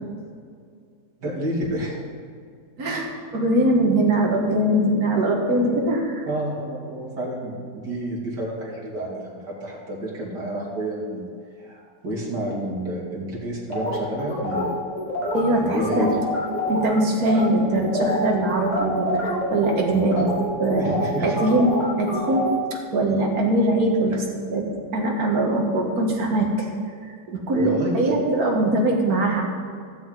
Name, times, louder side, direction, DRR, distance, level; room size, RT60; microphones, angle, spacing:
voice 1, 1.2-1.9 6.3-11.3 11.6-14.8 15.5-16.1 20.1-20.2 20.8-21.3 27.5-28.2, right 1 dB, 80° right, -4 dB, 3.0 m, -30 dB
voice 2, 2.8-6.3 15.3-16.1 16.7-20.3 20.6-20.9 21.2-22.5 22.9-24.2 24.5-26.7 27.1-29.4, right 1 dB, 60° right, 0 dB, 2.1 m, -22 dB
sound 1, 13.7-16.9 17.2-17.5 17.8-22.6, left 1 dB, 25° left, 3.1 m, -27 dB
16.0 x 7.8 x 3.8 m, 2.2 s
omnidirectional pair, 1.8 m